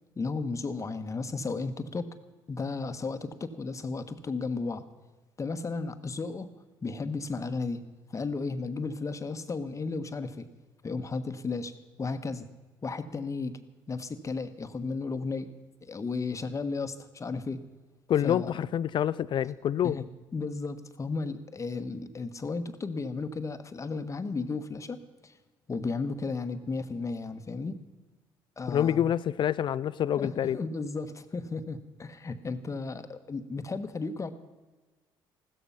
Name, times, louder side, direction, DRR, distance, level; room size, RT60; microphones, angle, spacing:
voice 1, 0.2-2.1 2.5-4.8 5.4-6.5 6.8-10.4 10.8-11.7 12.0-12.5 12.8-13.6 13.9-15.5 15.9-17.6 18.2-18.6 19.8-20.1 20.3-25.3 25.7-27.7 28.6-29.1 30.2-34.3, left 4 dB, 30° left, 9 dB, 1.3 m, -34 dB
voice 2, 18.1-20.0 28.7-30.6, left 10 dB, 55° left, 18 dB, 0.4 m, -27 dB
15.0 x 13.5 x 5.7 m, 1.2 s
supercardioid pair, 70°, 10 cm